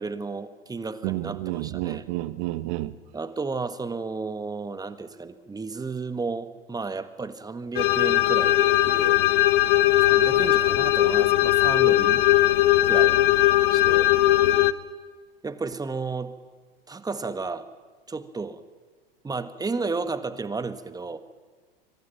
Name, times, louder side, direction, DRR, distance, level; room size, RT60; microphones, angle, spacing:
voice 1, 0.0-2.1 3.1-9.2 10.0-12.2 12.8-13.2 13.7-14.1 15.4-16.3 16.9-17.7 18.1-18.6 19.2-21.2, right 4 dB, 10° right, 1.5 m, -33 dB
voice 2, 1.0-2.9, right 17 dB, 50° right, 1.4 m, -30 dB
sound 1, 7.8-14.7, left 14 dB, 60° left, 1.2 m, -19 dB
26.5 x 24.5 x 5.9 m
figure-of-eight pair, 85°, 30 cm